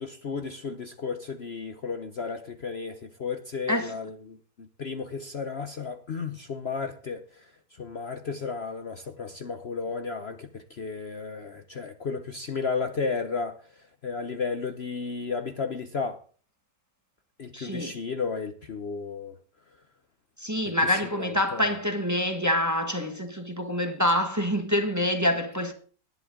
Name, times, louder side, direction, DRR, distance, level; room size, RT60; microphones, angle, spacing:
voice 1, 0.0-16.2 17.4-19.4 20.7-21.8, left 5 dB, 45° left, 1.1 m, -34 dB
voice 2, 17.5-18.0 20.4-25.7, left 1 dB, 10° right, 1.5 m, -26 dB
19.5 x 10.5 x 3.8 m
omnidirectional pair, 1.7 m